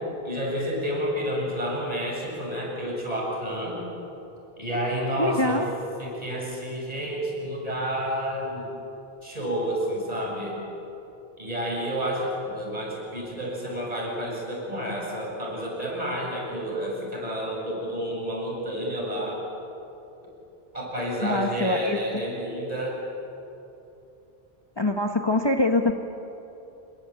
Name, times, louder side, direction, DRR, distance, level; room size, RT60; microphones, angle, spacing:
voice 1, 0.2-3.8 4.6-5.6 6.0-8.7 9.2-10.6 11.4-19.4 20.7-23.0, equal, 40° right, -3 dB, 7.9 m, -30 dB
voice 2, 5.2-5.7 21.2-22.0 24.8-25.9, left 2 dB, 25° left, 4 dB, 1.1 m, -24 dB
26.5 x 22.5 x 8.9 m, 2.9 s
omnidirectional pair, 1.1 m